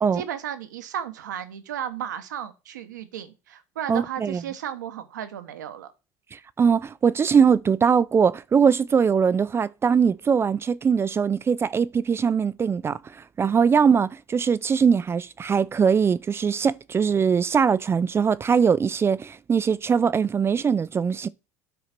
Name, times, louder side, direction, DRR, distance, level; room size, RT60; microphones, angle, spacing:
voice 1, 0.1-5.9, right 10 dB, 90° right, 1.0 m, -34 dB
voice 2, 3.9-4.4 6.3-13.0 13.4-21.3, right 6 dB, 25° right, 0.4 m, -21 dB
9.2 x 4.0 x 5.9 m
hypercardioid pair, 85°, 9 cm